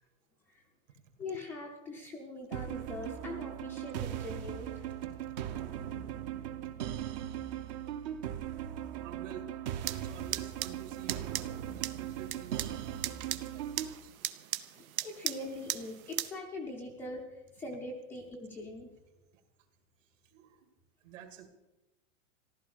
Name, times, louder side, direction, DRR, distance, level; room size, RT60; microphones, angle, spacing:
voice 1, 1.2-4.9 14.7-18.9, left 2 dB, 5° left, -2 dB, 0.5 m, -42 dB
sound 1, 2.5-13.9, right 11 dB, 35° right, 0.7 m, -39 dB
voice 2, 5.0-5.3 8.4-14.5 20.2-20.7 21.0-21.5, right 8 dB, 65° right, 7 dB, 2.6 m, -51 dB
sound 2, 9.8-16.3, right 12 dB, 85° right, 1.0 m, -39 dB
15.0 x 12.5 x 6.8 m, 1.0 s
supercardioid pair, 170°, 41 cm